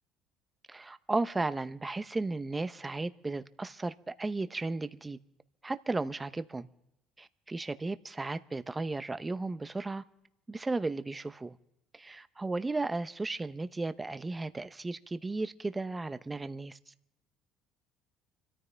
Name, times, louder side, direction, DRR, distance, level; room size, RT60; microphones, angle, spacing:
voice 1, 0.7-5.2 5.6-6.7 7.2-10.0 10.5-11.6 11.9-16.9, right 3 dB, 20° right, 0.8 m, -35 dB
25.5 x 14.0 x 3.4 m
supercardioid pair, 80°, 0 cm